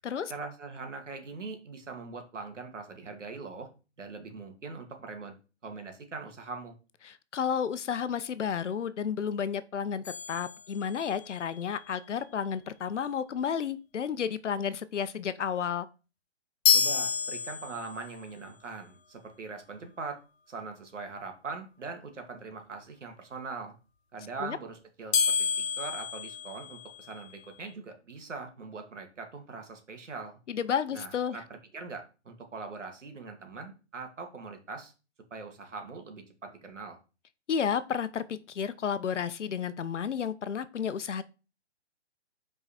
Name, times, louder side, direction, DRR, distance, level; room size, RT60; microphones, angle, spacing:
voice 1, 0.3-3.7 4.0-5.3 5.6-6.8 16.7-20.2 20.5-23.7 24.1-30.4 30.9-34.9 35.3-37.0, right 4 dB, 85° right, 2.2 m, -42 dB
voice 2, 7.0-15.9 24.4-24.6 30.5-31.4 37.5-41.2, left 7 dB, 80° left, 0.8 m, -32 dB
sound 1, 10.0-11.3 16.6-18.1 25.1-27.3, left 7 dB, 60° left, 1.4 m, -29 dB
5.7 x 4.8 x 4.2 m
hypercardioid pair, 160°, 35 cm